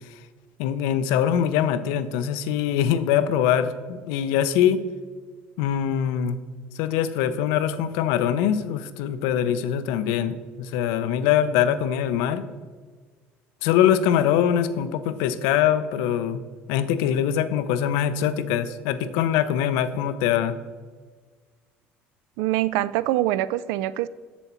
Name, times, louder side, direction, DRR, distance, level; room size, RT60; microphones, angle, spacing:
voice 1, 0.6-4.8 5.6-6.4 6.8-12.4 13.6-16.4 16.7-20.6, left 9 dB, 90° left, 12 dB, 0.5 m, -23 dB
voice 2, 22.4-24.1, right 15 dB, 85° right, 17 dB, 0.3 m, -24 dB
7.1 x 7.0 x 4.3 m, 1.5 s
cardioid pair, 120°, 5 cm